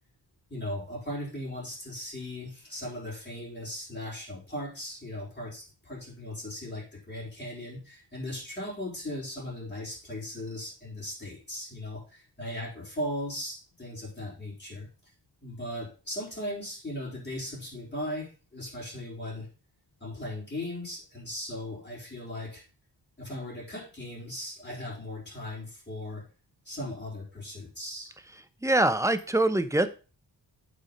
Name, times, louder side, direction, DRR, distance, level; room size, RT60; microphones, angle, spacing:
voice 1, 0.5-14.9 15.4-19.5 20.0-22.6 23.2-26.2 26.6-28.1, left 1 dB, 25° left, -4 dB, 4.5 m, -38 dB
voice 2, 28.6-29.9, right 1 dB, 5° right, 11 dB, 0.7 m, -23 dB
8.3 x 5.2 x 5.3 m, 0.35 s
cardioid pair, 85°, 42 cm